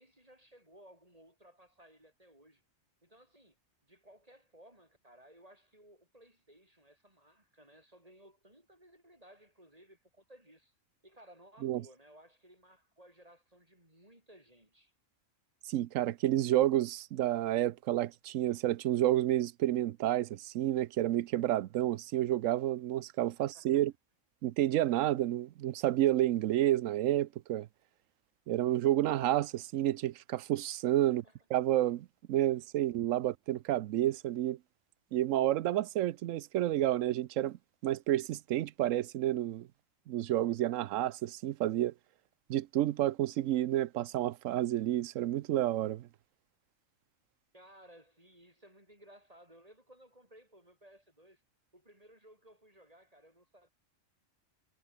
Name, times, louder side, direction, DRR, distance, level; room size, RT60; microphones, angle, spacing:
voice 1, 0.0-2.6 3.0-3.6 3.8-10.7 11.0-14.9 23.4-23.8 31.1-31.4 47.5-51.4 51.7-53.7, right 1 dB, 30° right, 6.9 m, -59 dB
voice 2, 15.7-23.9 24.4-27.7 28.5-31.2 31.5-34.6 35.1-37.6 37.8-39.7 40.1-41.9 42.5-46.1, right 13 dB, 80° right, 1.0 m, -30 dB
omnidirectional pair, 1.3 m